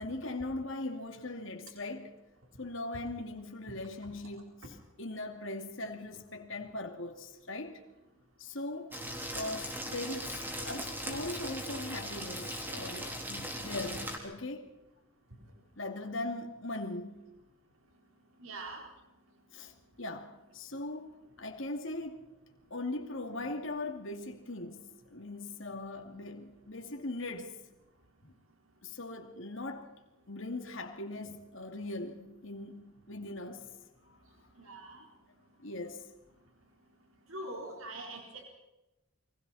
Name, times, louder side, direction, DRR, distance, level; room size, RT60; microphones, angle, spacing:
voice 1, 0.0-2.1 2.6-7.8 8.4-9.0 9.3-14.7 15.8-17.2 19.5-19.7 20.0-22.3 22.7-27.6 28.2-28.3 28.8-29.9 30.3-33.7 34.1-34.2 35.6-36.1, left 2 dB, 65° left, 2.6 m, -40 dB
sound 1, 8.9-14.2, equal, 10° right, 3.6 m, -39 dB
voice 2, 18.4-18.8 34.6-35.0 37.3-38.4, right 2 dB, 75° right, 4.1 m, -43 dB
30.0 x 23.0 x 4.3 m
head